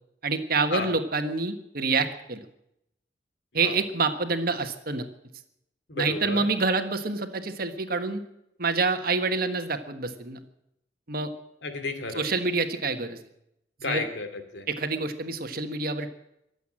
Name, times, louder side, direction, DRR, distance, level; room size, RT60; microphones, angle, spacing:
voice 1, 0.2-2.4 3.5-5.1 5.9-8.2 8.6-10.4 11.1-11.3 12.1-13.2 13.8-14.0 14.7-16.1, right 4 dB, 55° right, 8 dB, 1.5 m, -27 dB
voice 2, 5.9-6.5 11.6-12.2 13.8-14.7, left 3 dB, 80° left, 7 dB, 2.6 m, -32 dB
23.0 x 8.2 x 7.6 m, 0.80 s
head